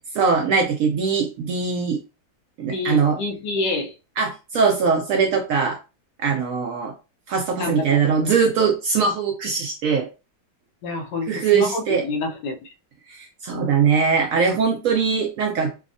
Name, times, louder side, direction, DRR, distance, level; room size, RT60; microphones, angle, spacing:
voice 1, 0.1-2.0 2.6-3.2 4.2-5.8 6.2-6.9 7.3-10.1 11.3-12.0 13.1-15.7, right 5 dB, 70° right, 0.8 m, -21 dB
voice 2, 2.6-3.9 7.6-8.0 10.8-12.7, left 3 dB, 85° left, 1.3 m, -27 dB
3.4 x 2.0 x 2.5 m
omnidirectional pair, 1.8 m